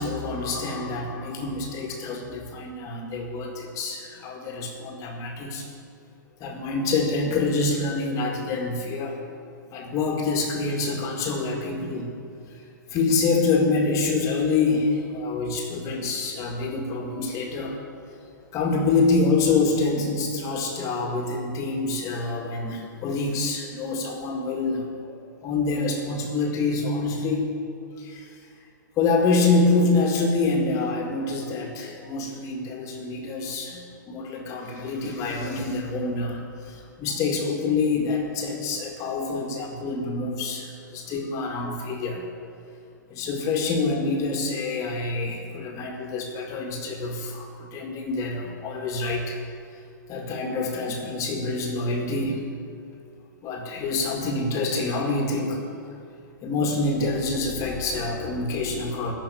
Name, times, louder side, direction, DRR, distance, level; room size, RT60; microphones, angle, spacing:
voice 1, 0.0-5.7 6.4-9.2 9.7-12.1 12.9-17.8 18.5-25.2 25.4-27.5 28.0-28.3 29.0-42.3 43.1-49.4 50.1-52.4 53.4-55.6 56.4-59.1, left 3 dB, 30° left, 1 dB, 1.9 m, -26 dB
15.0 x 5.8 x 9.8 m, 2.5 s
hypercardioid pair, 120°, 11 cm